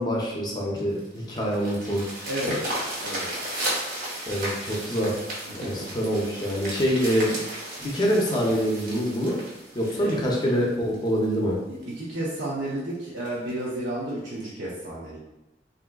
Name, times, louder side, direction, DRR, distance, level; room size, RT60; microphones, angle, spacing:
voice 1, 0.0-2.3 4.3-5.1 5.5-7.3 7.8-9.4 9.7-11.6, equal, 25° left, -2 dB, 0.5 m, -25 dB
sound 1, 0.8-11.2 11.8-11.9 12.4-12.5 12.8-12.9 13.3-13.5 14.4-14.5, right 1 dB, 50° right, 0.9 m, -34 dB
voice 2, 2.2-2.6 3.0-3.3 5.5-5.9 9.9-10.4 11.7-15.2, right 1 dB, 75° right, -7 dB, 0.6 m, -32 dB
3.5 x 2.5 x 2.2 m, 0.97 s
head